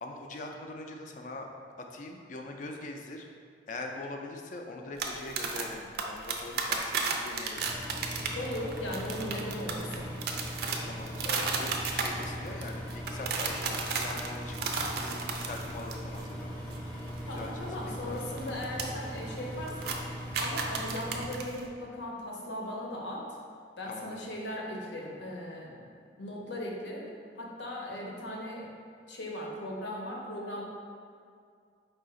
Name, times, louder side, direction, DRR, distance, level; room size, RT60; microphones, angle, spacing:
voice 1, 0.0-1.5 1.9-3.2 3.7-7.7 9.3-9.5 10.8-16.6 17.2-18.6 23.9-24.2, left 2 dB, 45° left, 2 dB, 0.4 m, -42 dB
sound 1, 5.0-16.3 16.5-16.8 17.0-18.8 19.2-19.4 19.7-21.7, right 4 dB, 60° right, 0.4 m, -34 dB
Engine, 7.6-21.3, equal, 10° left, 0.7 m, -40 dB
voice 2, 8.3-10.1 17.2-20.0 20.4-23.3 23.8-25.8 26.2-27.1 27.4-28.7 29.1-30.6, left 1 dB, 75° left, -2 dB, 0.7 m, -38 dB
4.8 x 2.4 x 3.7 m, 2.2 s
head